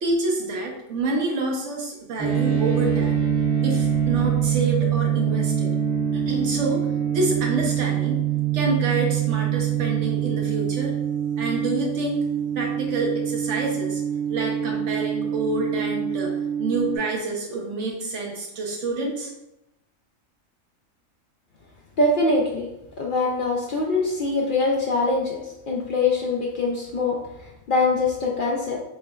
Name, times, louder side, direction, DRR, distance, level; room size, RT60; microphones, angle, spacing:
voice 1, 0.0-3.2 3.6-5.8 6.1-8.2 8.5-10.9 11.4-12.2 12.5-14.0 14.3-16.3 16.6-19.3, right 2 dB, 60° right, 0 dB, 1.1 m, -27 dB
sound 1, 2.2-17.0, right 9 dB, 35° right, 1.5 m, -24 dB
voice 2, 22.0-22.7 23.0-25.4 25.7-27.2 27.7-28.8, left 3 dB, 70° left, -1 dB, 0.5 m, -23 dB
4.3 x 3.1 x 2.3 m, 0.87 s
omnidirectional pair, 1.4 m